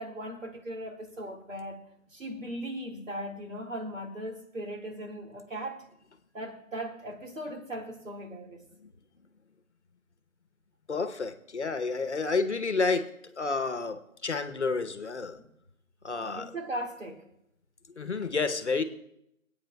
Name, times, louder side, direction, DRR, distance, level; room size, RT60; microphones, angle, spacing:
voice 1, 0.0-1.8 2.1-5.8 6.3-8.6 15.4-15.5 16.2-17.3, right 1 dB, 65° right, 2.1 m, -38 dB
voice 2, 10.9-13.1 13.4-15.4 16.0-16.5 18.0-18.8, left 4 dB, 55° left, 1.0 m, -30 dB
24.0 x 8.7 x 2.3 m
figure-of-eight pair, 175°, 41 cm